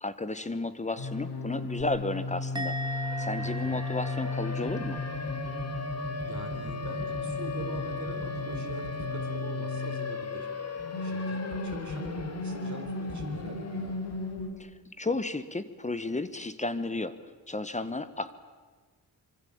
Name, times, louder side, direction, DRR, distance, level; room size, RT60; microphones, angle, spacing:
voice 1, 0.0-2.8 3.2-5.0 14.6-14.7 15.0-17.1 17.5-18.4, left 2 dB, 20° left, 13 dB, 1.2 m, -33 dB
sound 1, 1.0-10.2 10.8-14.5, left 2 dB, 80° left, 4.9 m, -35 dB
Siren, 1.8-1.9 2.2-14.2, left 4 dB, 40° left, 2.4 m, -39 dB
Musical instrument, 2.5-5.9 6.2-6.6, right 2 dB, 10° right, 0.7 m, -40 dB
voice 2, 3.4-3.8 6.2-10.5 11.0-14.0, right 4 dB, 50° right, 1 dB, 4.5 m, -44 dB
26.0 x 24.0 x 8.7 m, 1.4 s
wide cardioid pair, 155°, 38 cm